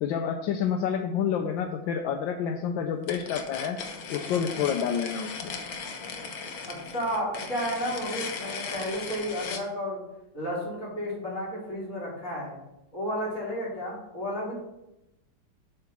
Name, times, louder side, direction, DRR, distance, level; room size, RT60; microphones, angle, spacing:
voice 1, 0.0-3.8 4.1-5.5, left 7 dB, 75° left, 4 dB, 1.3 m, -28 dB
sound 1, 3.0-9.7, left 5 dB, 55° left, 1.1 m, -37 dB
voice 2, 6.7-10.0 10.3-12.6 12.9-14.6, equal, 40° left, -7 dB, 3.5 m, -32 dB
8.0 x 3.8 x 5.9 m, 0.92 s
omnidirectional pair, 2.2 m